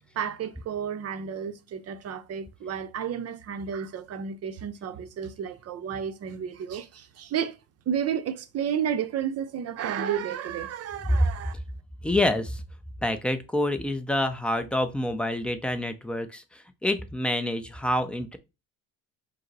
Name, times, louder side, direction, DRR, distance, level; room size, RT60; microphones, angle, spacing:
voice 1, 0.2-7.5 7.9-11.5, right 8 dB, 40° right, 0.6 m, -32 dB
voice 2, 12.0-12.6 13.0-18.4, left 1 dB, 5° left, 0.3 m, -27 dB
5.0 x 2.0 x 3.9 m
cardioid pair, 115°, 39 cm